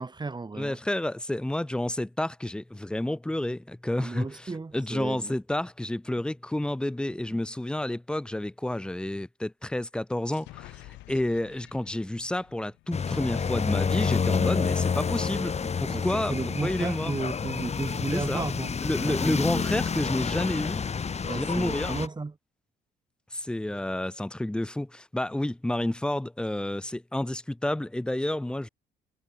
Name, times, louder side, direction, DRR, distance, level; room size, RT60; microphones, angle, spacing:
voice 1, 0.0-0.8 4.0-5.3 15.9-19.7 21.2-22.4, right 3 dB, 25° right, 1.5 m, -34 dB
voice 2, 0.6-15.5 15.8-16.3 16.6-17.2 18.1-18.5 18.8-20.9 21.3-21.9 23.3-28.7, left 1 dB, 5° left, 0.5 m, -30 dB
sound 1, 10.3-13.9, left 19 dB, 90° left, 6.1 m, -51 dB
sound 2, 12.9-22.1, left 6 dB, 40° left, 1.3 m, -29 dB
supercardioid pair, 65°, 18 cm